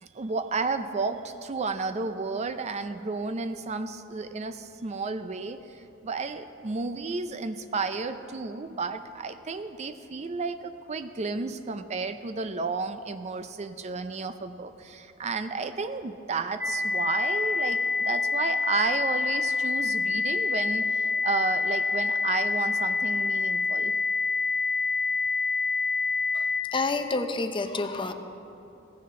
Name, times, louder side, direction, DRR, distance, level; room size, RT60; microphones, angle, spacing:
voice 1, 0.0-17.8 18.0-23.9, right 4 dB, 30° right, 10 dB, 0.4 m, -32 dB
sound 1, 16.6-26.6, left 4 dB, 10° right, 1.7 m, -27 dB
voice 2, 26.7-28.1, left 3 dB, 25° left, 7 dB, 0.6 m, -28 dB
17.0 x 15.0 x 3.7 m, 2.8 s
head